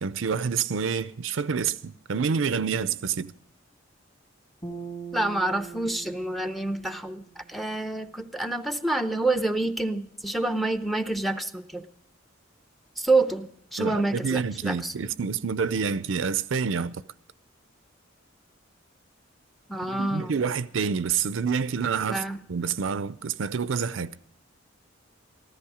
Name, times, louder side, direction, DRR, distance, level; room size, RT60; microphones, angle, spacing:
voice 1, 0.0-3.3 13.8-17.0 19.8-22.2 22.5-24.1, right 6 dB, 70° right, 0.5 m, -28 dB
sound 1, 4.6-8.0, right 5 dB, 25° left, 2.3 m, -42 dB
voice 2, 5.1-11.9 13.0-14.9 19.7-20.3 22.1-22.4, right 2 dB, ahead, 0.6 m, -27 dB
14.5 x 13.5 x 4.9 m
head